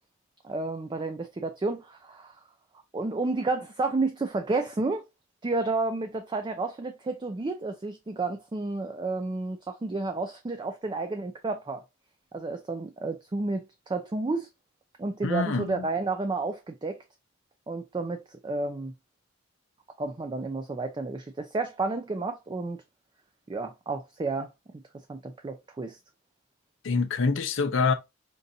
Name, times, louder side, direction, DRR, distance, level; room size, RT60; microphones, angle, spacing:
voice 1, 0.4-2.4 2.9-5.0 5.4-11.8 12.3-14.5 15.0-17.0 17.7-18.9 20.0-22.8 23.5-24.5 25.1-26.0, right 3 dB, 20° right, 0.4 m, -31 dB
voice 2, 15.2-15.9 26.8-27.9, left 4 dB, 65° left, 0.5 m, -26 dB
5.2 x 2.5 x 2.6 m
head